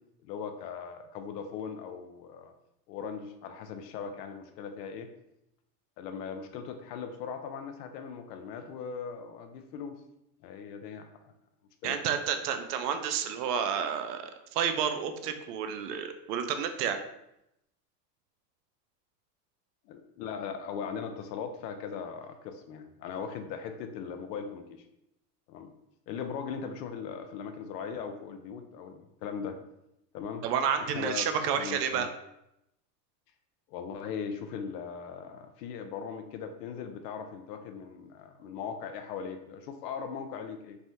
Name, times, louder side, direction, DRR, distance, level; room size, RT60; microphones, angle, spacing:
voice 1, 0.2-2.5 2.9-5.1 6.0-9.9 10.4-11.3 11.8-12.0 19.9-24.8 25.5-25.7 26.1-29.6 30.1-30.4 30.8-31.3 31.6-32.1 33.7-40.8, left 6 dB, 80° left, 7 dB, 0.6 m, -39 dB
voice 2, 11.8-17.0 30.4-32.1, right 7 dB, 75° right, 8 dB, 0.6 m, -30 dB
3.4 x 2.1 x 2.6 m, 0.83 s
hypercardioid pair, 105°, 49 cm